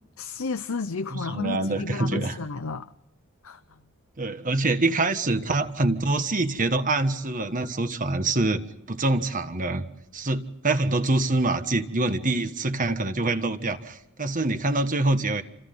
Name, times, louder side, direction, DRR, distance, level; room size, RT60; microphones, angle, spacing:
voice 1, 0.2-2.9 3.4-3.6, left 4 dB, 75° left, 0.8 m, -32 dB
voice 2, 1.1-2.4 4.2-8.6 8.9-9.9 10.1-15.4, right 2 dB, 40° right, 1.5 m, -25 dB
28.5 x 27.0 x 3.9 m
head